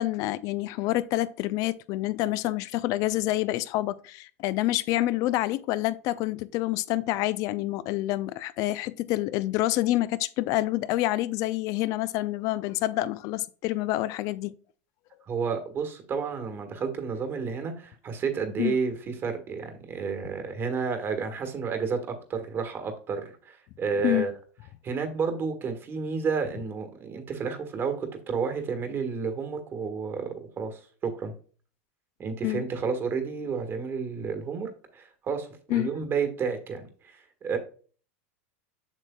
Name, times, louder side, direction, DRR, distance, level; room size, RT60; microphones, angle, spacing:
voice 1, 0.0-14.6 18.6-18.8 24.0-24.3 32.4-32.7 35.7-35.9, left 16 dB, 50° left, 0.4 m, -27 dB
voice 2, 15.3-24.3 24.8-31.3 32.2-37.6, right 5 dB, 30° right, 1.4 m, -31 dB
7.5 x 6.4 x 2.3 m
hypercardioid pair, 105°, 7 cm